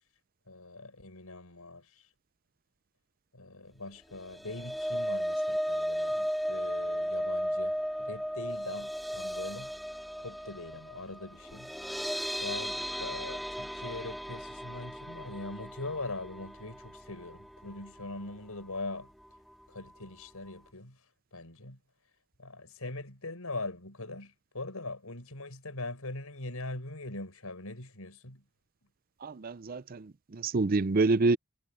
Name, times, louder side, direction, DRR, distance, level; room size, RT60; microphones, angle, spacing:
voice 1, 0.5-2.1 3.3-9.7 10.2-11.7 12.4-19.1 19.7-21.0 21.3-21.8 22.4-28.4, left 2 dB, 85° left, 5.4 m, -42 dB
sound 1, 4.1-18.4 18.7-19.0 19.3-19.4, equal, ahead, 2.5 m, -35 dB
voice 2, 29.2-31.4, right 3 dB, 40° right, 0.5 m, -27 dB
head